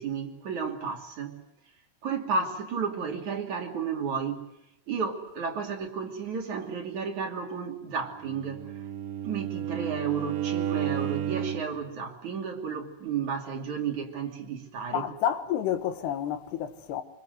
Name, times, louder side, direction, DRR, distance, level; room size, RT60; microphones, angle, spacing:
voice 1, 0.0-1.4 2.0-4.5 4.9-8.7 9.2-15.0, right 5 dB, 50° right, 3.9 m, -32 dB
Bowed string instrument, 8.1-11.8, right 10 dB, 80° right, 3.4 m, -32 dB
voice 2, 14.9-17.0, left 10 dB, 75° left, 3.4 m, -29 dB
25.5 x 25.0 x 8.0 m
omnidirectional pair, 4.8 m